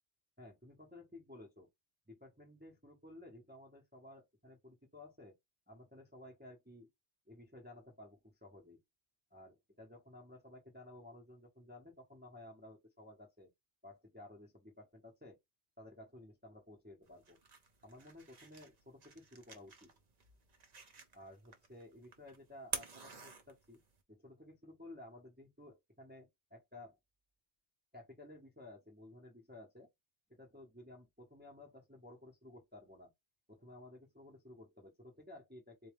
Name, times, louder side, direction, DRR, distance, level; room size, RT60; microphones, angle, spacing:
voice 1, 0.4-1.7 2.1-5.4 5.7-6.9 7.3-8.8 9.3-13.5 13.8-15.4 15.8-17.4 17.8-19.9 21.1-23.8 24.1-27.0 27.9-29.9 30.3-33.1 33.5-35.9, left 1 dB, 10° right, 0.8 m, -55 dB
sound 1, 17.0-24.0, right 4 dB, 45° right, 0.7 m, -49 dB
4.0 x 2.3 x 3.3 m
omnidirectional pair, 1.1 m